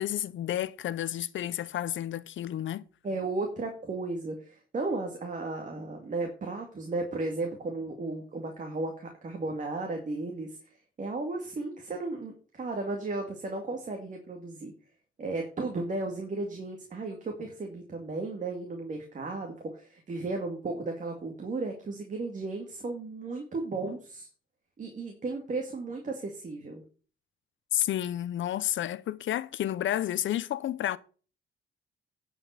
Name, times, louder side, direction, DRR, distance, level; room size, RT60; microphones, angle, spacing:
voice 1, 0.0-2.8 27.7-31.0, left 12 dB, 70° left, 0.7 m, -31 dB
voice 2, 3.0-10.6 11.0-14.7 15.2-24.3 24.8-26.8, right 3 dB, 40° right, 2.2 m, -34 dB
10.5 x 5.4 x 6.8 m
cardioid pair, 120°, 21 cm